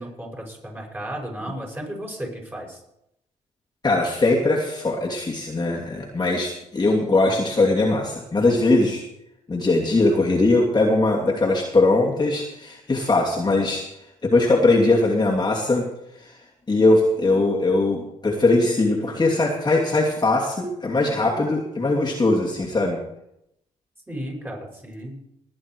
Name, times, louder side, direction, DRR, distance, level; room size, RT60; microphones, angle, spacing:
voice 1, 0.0-2.8 24.1-25.2, right 1 dB, 15° right, -1 dB, 6.6 m, -34 dB
voice 2, 3.8-9.0 9.5-13.8 14.2-15.9 16.2-16.3 16.7-23.0, left 2 dB, 30° left, -2 dB, 2.8 m, -20 dB
19.5 x 8.8 x 4.8 m, 0.81 s
hypercardioid pair, 50°, 15 cm